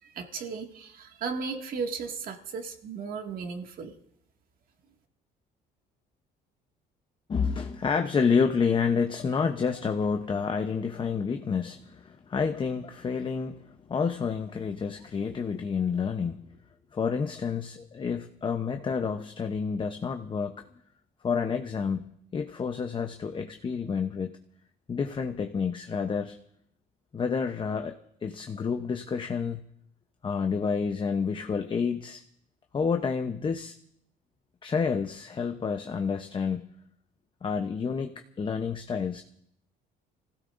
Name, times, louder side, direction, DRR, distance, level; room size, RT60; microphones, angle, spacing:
voice 1, 0.0-3.9, right 5 dB, 55° right, 3 dB, 2.1 m, -35 dB
voice 2, 7.3-13.6 13.9-16.4 16.9-20.6 21.2-22.0 22.3-24.3 24.9-26.4 27.1-29.6 30.2-32.2 32.7-33.7 34.6-36.7 37.4-39.2, left 5 dB, 30° left, 6 dB, 0.8 m, -29 dB
27.5 x 16.0 x 2.6 m, 0.72 s
cardioid pair, 110°, 17 cm